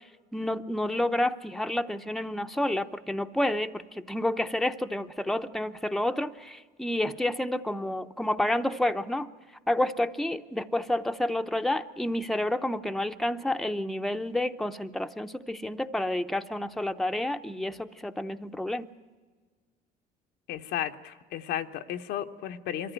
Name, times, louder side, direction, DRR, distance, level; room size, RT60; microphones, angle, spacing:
voice 1, 0.3-9.3 9.7-18.9, left 1 dB, ahead, 7 dB, 0.7 m, -29 dB
voice 2, 20.5-22.9, left 11 dB, 85° left, 6 dB, 1.0 m, -34 dB
23.0 x 14.5 x 9.1 m, 1.4 s
cardioid pair, 110°, 17 cm